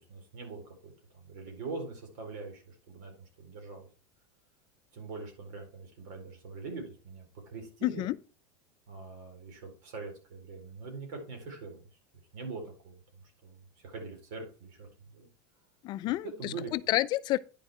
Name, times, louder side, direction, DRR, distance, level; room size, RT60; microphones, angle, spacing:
voice 1, 0.1-3.1 3.4-3.9 4.9-8.0 8.9-11.8 12.3-13.0 13.4-15.3 16.0-16.7, right 4 dB, 70° right, 4.4 m, -43 dB
voice 2, 7.8-8.2 15.8-17.4, left 16 dB, 45° left, 0.4 m, -30 dB
9.9 x 6.2 x 4.4 m
supercardioid pair, 125°, 10 cm